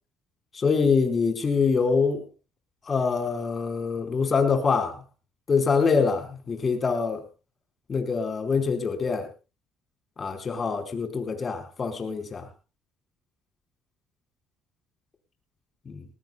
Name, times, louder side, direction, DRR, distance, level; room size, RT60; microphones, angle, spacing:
voice 1, 0.5-2.3 2.9-5.0 5.5-7.2 7.9-9.3 10.2-12.5 15.8-16.0, left 5 dB, 35° left, 5 dB, 4.7 m, -25 dB
21.0 x 19.0 x 2.3 m, 0.31 s
cardioid pair, 95°, 0 cm